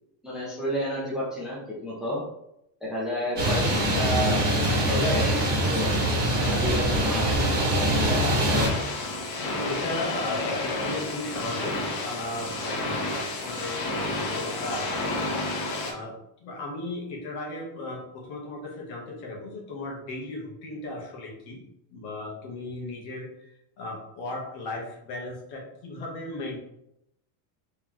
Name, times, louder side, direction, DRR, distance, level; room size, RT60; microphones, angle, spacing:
voice 1, 0.2-2.2 2.8-6.0 6.4-7.5, equal, ahead, -7 dB, 0.7 m, -31 dB
sound 1, 3.4-8.7, right 1 dB, 20° right, 1.4 m, -23 dB
sound 2, 8.5-15.9, left 2 dB, 90° left, 1.4 m, -30 dB
voice 2, 9.5-15.3 15.8-16.1 16.4-21.6 21.9-23.5 23.8-26.6, left 2 dB, 50° left, -2 dB, 1.4 m, -36 dB
3.8 x 3.5 x 3.0 m, 0.81 s
cardioid pair, 170°, 49 cm